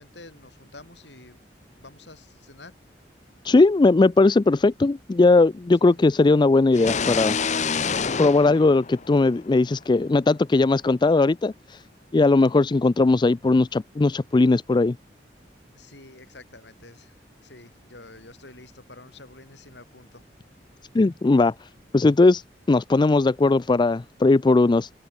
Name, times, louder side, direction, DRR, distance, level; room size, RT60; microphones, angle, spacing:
voice 1, 0.0-1.4 1.8-2.8 5.9-6.0 15.7-17.2 17.4-20.2, left 2 dB, 80° left, 6.9 m, -48 dB
voice 2, 3.4-7.3 8.2-11.8 12.1-15.0 20.9-21.7 21.9-24.9, left 3 dB, 25° left, 0.4 m, -19 dB
sound 1, 6.7-9.5, left 5 dB, 45° left, 0.9 m, -27 dB
head